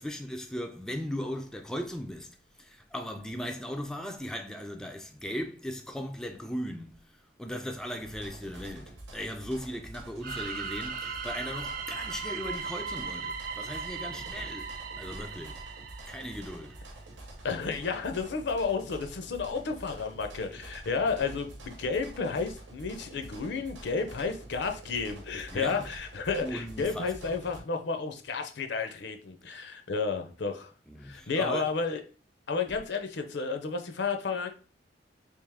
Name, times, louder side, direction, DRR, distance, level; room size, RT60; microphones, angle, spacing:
voice 1, 0.0-15.6 16.1-16.8 25.5-25.9 26.4-27.4 30.9-31.7, equal, 5° left, 0.3 m, -38 dB
sound 1, 8.0-27.6, right 1 dB, 85° right, 0.9 m, -47 dB
sound 2, 10.2-16.9, right 5 dB, 50° right, 0.5 m, -38 dB
voice 2, 17.4-30.7 31.0-32.0 32.5-34.5, left 4 dB, 65° left, 0.6 m, -32 dB
3.5 x 2.9 x 3.4 m
head